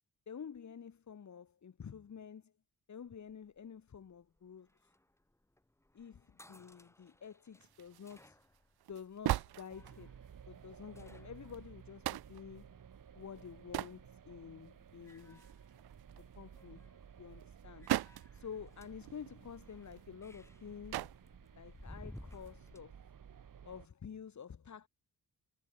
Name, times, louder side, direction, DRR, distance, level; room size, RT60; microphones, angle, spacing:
voice 1, 0.3-2.5 2.9-4.9 5.9-8.4 8.9-10.2 10.5-12.7 13.1-15.4 16.3-16.8 17.2-17.9 18.3-21.1 21.6-22.9 23.6-24.9, left 7 dB, 50° left, 3.6 m, -50 dB
sound 1, 3.3-12.8 14.1-14.5 14.9-16.2 16.4-17.1 17.8-22.8, left 1 dB, 5° left, 2.4 m, -59 dB
sound 2, 7.6-10.3 10.8-10.9 11.3-11.6 12.1-12.5 13.3-14.0 14.5-14.6 15.0-16.6 17.4-18.4 18.7-18.8 18.9-20.6 20.9-21.2 22.2-22.5, right 15 dB, 85° right, 0.6 m, -40 dB
sound 3, 9.7-23.9, right 8 dB, 60° right, 6.6 m, -56 dB
wide cardioid pair, 155°, 37 cm